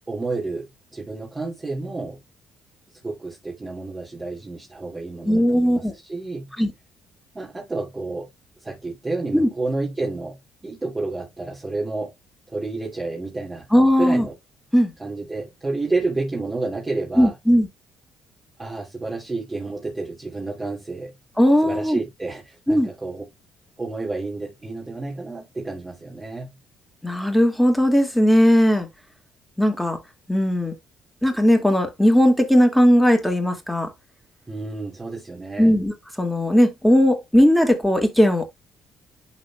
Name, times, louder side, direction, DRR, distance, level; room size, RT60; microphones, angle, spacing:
voice 1, 0.1-2.2 2.9-6.5 7.3-8.3 8.6-12.1 12.5-13.7 14.0-14.4 15.0-17.4 18.6-21.1 21.6-23.3 23.8-26.5 34.5-35.7, right 3 dB, 20° right, 2.7 m, -30 dB
voice 2, 5.3-5.9 6.6-6.7 9.3-9.5 13.7-14.2 14.7-14.9 17.2-17.7 21.4-22.0 22.7-22.9 27.0-28.9 29.6-30.0 30.3-30.7 31.2-33.9 35.6-38.5, equal, 5° left, 2.3 m, -18 dB
11.5 x 4.1 x 2.4 m
cardioid pair, 90°, 0 cm